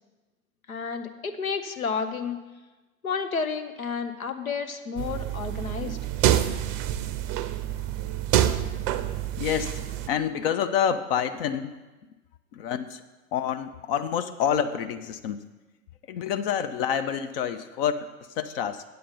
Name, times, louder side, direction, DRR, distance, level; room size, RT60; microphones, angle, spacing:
voice 1, 0.7-2.4 3.0-6.0, left 5 dB, 85° left, 8 dB, 0.8 m, -31 dB
sound 1, 5.0-10.1, right 11 dB, 35° right, 0.5 m, -27 dB
voice 2, 9.4-11.8 12.5-13.0 13.3-15.4 16.1-18.1 18.4-18.8, left 8 dB, 45° left, 11 dB, 0.6 m, -28 dB
8.6 x 7.9 x 5.2 m, 1.2 s
figure-of-eight pair, 90°, 41 cm